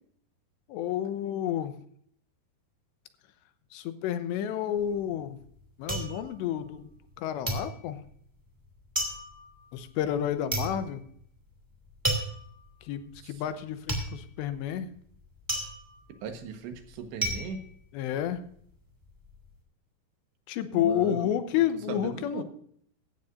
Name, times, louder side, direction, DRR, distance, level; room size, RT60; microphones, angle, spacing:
voice 1, 0.7-1.8 3.7-5.4 5.8-8.0 9.7-11.0 12.8-14.9 17.9-18.4 20.5-22.4, left 10 dB, 85° left, 10 dB, 3.1 m, -30 dB
sound 1, 4.8-7.1 7.4-18.6 18.9-19.5, right 1 dB, 5° right, 1.5 m, -34 dB
voice 2, 16.2-17.6 20.7-21.3 21.9-22.4, right 6 dB, 80° right, 6 dB, 3.6 m, -38 dB
16.0 x 14.0 x 2.6 m, 0.63 s
omnidirectional pair, 5.0 m